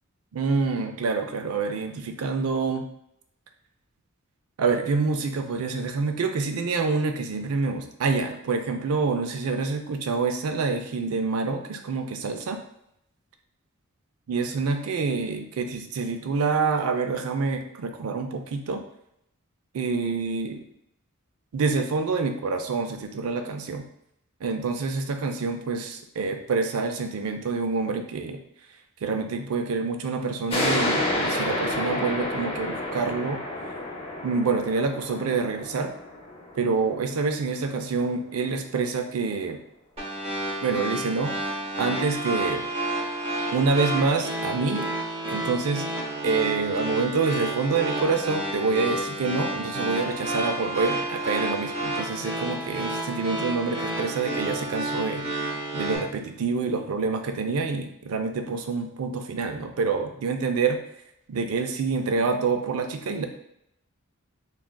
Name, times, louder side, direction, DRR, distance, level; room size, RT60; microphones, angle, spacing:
voice 1, 0.3-2.9 4.6-12.6 14.3-18.8 19.7-20.6 21.5-23.8 24.4-28.4 29.0-33.5 34.2-35.9 36.6-39.6 40.6-42.7 43.5-44.9 45.3-45.9 46.2-55.2 55.7-60.8 61.3-63.3, right 4 dB, 85° right, 6 dB, 0.4 m, -27 dB
sound 1, 30.5-37.7, left 1 dB, 25° left, 0.6 m, -30 dB
sound 2, 40.0-56.0, right 1 dB, 30° right, 0.7 m, -30 dB
3.6 x 2.3 x 2.2 m, 0.78 s
head